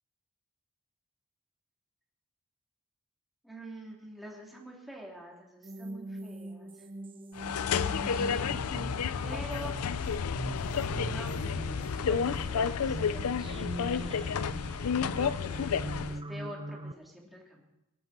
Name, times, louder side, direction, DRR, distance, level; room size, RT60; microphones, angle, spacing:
voice 1, 3.4-6.9 7.8-9.8 10.9-13.4 13.8-14.2 15.0-15.7 16.1-17.6, right 1 dB, ahead, -2 dB, 3.0 m, -46 dB
sound 1, 5.6-16.9, right 1 dB, 25° right, 0.6 m, -41 dB
sound 2, 7.4-16.2, left 6 dB, 90° left, 0.5 m, -31 dB
23.0 x 11.5 x 4.3 m, 0.92 s
head